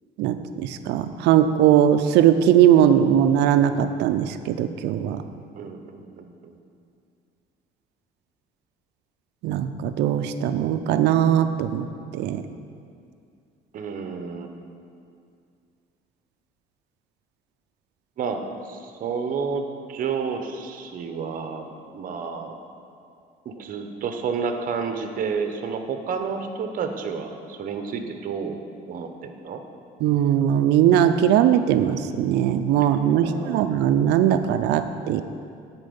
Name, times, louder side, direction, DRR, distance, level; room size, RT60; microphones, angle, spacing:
voice 1, 0.2-5.2 9.4-11.9 12.1-12.4 30.0-35.2, right 10 dB, 85° right, 10 dB, 0.5 m, -20 dB
voice 2, 5.5-6.6 13.7-14.5 18.2-18.4 18.7-22.6 23.4-28.6 28.9-29.6 33.1-33.7, right 5 dB, 55° right, 6 dB, 0.9 m, -30 dB
9.8 x 4.5 x 6.9 m, 2.4 s
cardioid pair, 110°, 17 cm